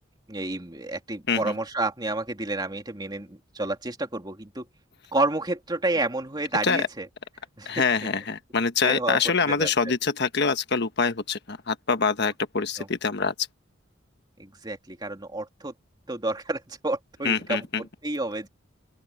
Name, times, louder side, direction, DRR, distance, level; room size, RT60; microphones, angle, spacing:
voice 1, 0.3-4.7 5.1-7.1 7.6-8.1 8.8-9.9 12.8-12.9 14.4-15.7 16.1-18.5, right 2 dB, 20° right, 2.6 m, -30 dB
voice 2, 7.6-13.3 17.2-17.8, left 5 dB, 55° left, 1.3 m, -25 dB
open air
head